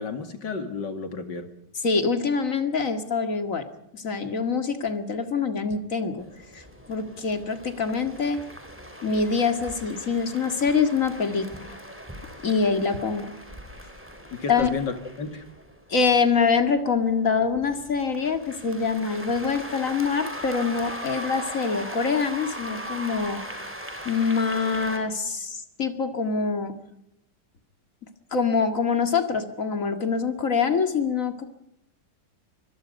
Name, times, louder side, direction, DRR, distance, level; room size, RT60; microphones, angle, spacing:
voice 1, 0.0-1.5 14.3-15.4, left 4 dB, 85° left, 8 dB, 2.9 m, -32 dB
voice 2, 1.8-3.7 3.9-6.2 6.5-8.4 9.0-11.5 12.4-13.3 14.5-14.7 15.9-23.4 24.1-26.7 28.3-31.5, left 5 dB, 50° left, 8 dB, 2.4 m, -25 dB
sound 1, 6.2-25.0, equal, 5° right, 3.9 m, -39 dB
25.0 x 21.5 x 5.4 m, 0.82 s
omnidirectional pair, 1.9 m